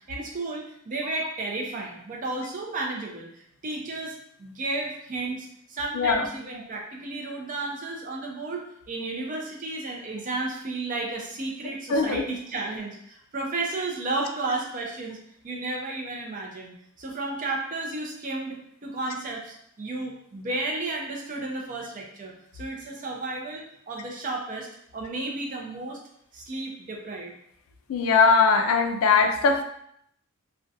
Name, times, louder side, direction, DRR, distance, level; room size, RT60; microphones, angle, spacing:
voice 1, 0.1-15.2 15.4-24.7 24.9-26.0 26.3-27.3, right 2 dB, 40° right, 0 dB, 0.4 m, -33 dB
voice 2, 5.9-6.3 11.9-12.2 27.9-29.6, left 4 dB, 75° left, 6 dB, 0.3 m, -20 dB
2.4 x 2.1 x 2.6 m, 0.70 s
head